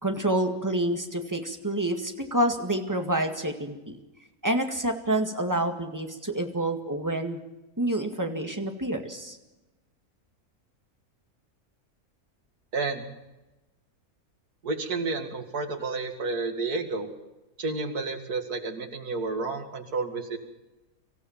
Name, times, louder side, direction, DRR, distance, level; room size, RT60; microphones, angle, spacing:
voice 1, 0.0-4.0 4.4-7.4 7.8-9.4, right 1 dB, 10° right, 4 dB, 2.0 m, -28 dB
voice 2, 12.7-13.0 14.6-17.1 17.6-20.4, right 3 dB, 80° right, 5 dB, 2.8 m, -31 dB
25.0 x 15.0 x 7.4 m, 1.0 s
omnidirectional pair, 1.6 m